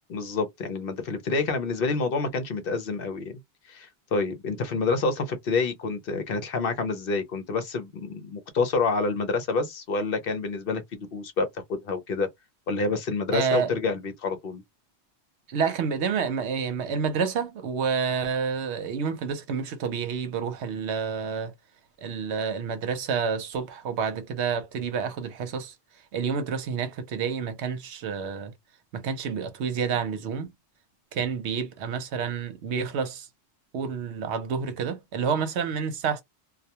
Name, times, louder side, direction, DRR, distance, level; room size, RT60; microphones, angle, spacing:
voice 1, 0.1-3.4 3.7-12.3 12.7-14.6, left 4 dB, 60° left, 0.7 m, -28 dB
voice 2, 13.3-13.7 15.5-21.5 22.0-25.7 26.1-28.5 28.9-30.5 31.1-33.3 33.7-36.2, right 6 dB, 75° right, 0.9 m, -29 dB
2.3 x 2.2 x 2.8 m
omnidirectional pair, 1.2 m